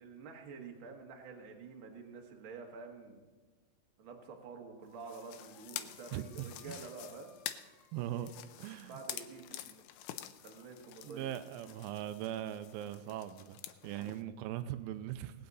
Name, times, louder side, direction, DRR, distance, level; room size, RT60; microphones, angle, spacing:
voice 1, 0.0-3.3 4.0-7.3 8.7-9.8 10.4-11.3, right 4 dB, 65° right, 2 dB, 1.2 m, -49 dB
sound 1, 4.9-8.7, left 2 dB, 50° left, 1.8 m, -66 dB
sound 2, 5.0-14.2, left 12 dB, 80° left, 2.3 m, -48 dB
voice 2, 6.1-6.8 7.9-8.3 8.6-9.0 11.0-15.5, right 12 dB, 85° right, 11 dB, 2.2 m, -40 dB
20.0 x 8.7 x 4.0 m, 1.3 s
omnidirectional pair, 4.6 m